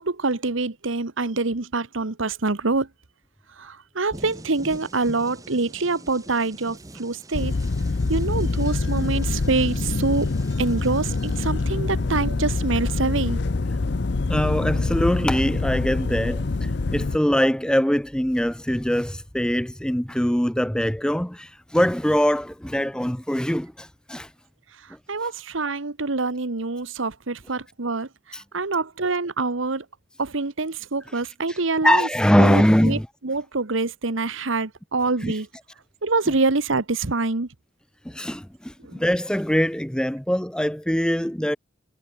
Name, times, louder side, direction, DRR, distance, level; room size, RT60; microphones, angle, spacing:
voice 1, 0.0-2.9 3.6-7.5 8.1-10.3 10.6-13.4 25.1-29.8 30.2-32.1 32.4-35.5 36.0-37.5 38.8-39.0, right 3 dB, 75° right, 1.3 m, -25 dB
sound 1, 4.1-11.5, right 1 dB, 15° right, 4.3 m, -45 dB
sound 2, 7.3-17.2, left 3 dB, 55° left, 0.6 m, -25 dB
voice 2, 14.3-24.3 28.3-28.4 31.5-31.6 31.8-33.0 35.2-35.3 38.1-41.6, equal, 5° left, 0.7 m, -22 dB
head